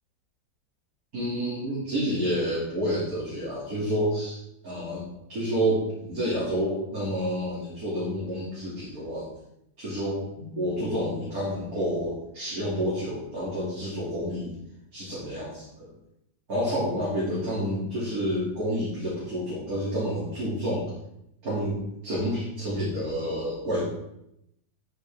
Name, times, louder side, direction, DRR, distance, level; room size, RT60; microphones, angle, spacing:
voice 1, 1.1-4.4 4.6-5.0 5.3-9.3 9.8-14.5 14.9-15.9 16.5-20.9 21.4-23.9, equal, 50° right, -9 dB, 3.2 m, -29 dB
13.0 x 6.4 x 3.6 m, 0.80 s
omnidirectional pair, 2.0 m